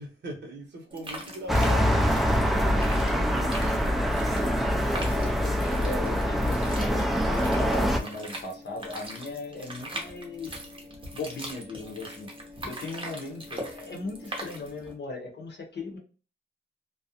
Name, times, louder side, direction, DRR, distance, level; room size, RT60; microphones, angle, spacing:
voice 1, 0.0-4.0, right 1 dB, 60° right, 0.8 m, -41 dB
sound 1, 0.9-14.9, right 1 dB, 25° right, 0.7 m, -41 dB
sound 2, 1.5-8.0, equal, ahead, 0.3 m, -24 dB
voice 2, 5.1-10.6 11.1-12.3 12.6-16.0, left 3 dB, 60° left, 0.6 m, -38 dB
2.4 x 2.0 x 2.7 m
wide cardioid pair, 125°, 20 cm